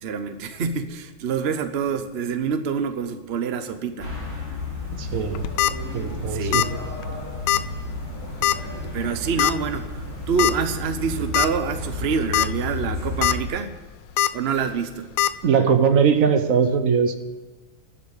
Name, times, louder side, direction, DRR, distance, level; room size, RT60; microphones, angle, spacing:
voice 1, 0.0-4.1 6.3-6.7 8.9-9.9 10.3-13.8 14.3-15.1, right 6 dB, 75° right, 9 dB, 0.5 m, -26 dB
sound 1, 4.0-13.4, left 2 dB, 5° left, 4.3 m, -32 dB
voice 2, 5.0-5.4 5.9-6.7 15.4-17.1, right 6 dB, 50° right, 8 dB, 1.1 m, -20 dB
sound 2, 5.3-5.7 6.5-6.8 7.0-7.1 7.5-7.6 8.4-8.7 9.4-9.5 10.4-10.5 11.0-11.1 11.3-11.5 12.1-12.5 12.9-13.3 14.2-14.3 15.2-15.3, left 12 dB, 85° left, 1.4 m, -20 dB
13.0 x 7.3 x 10.0 m, 1.3 s
omnidirectional pair, 2.3 m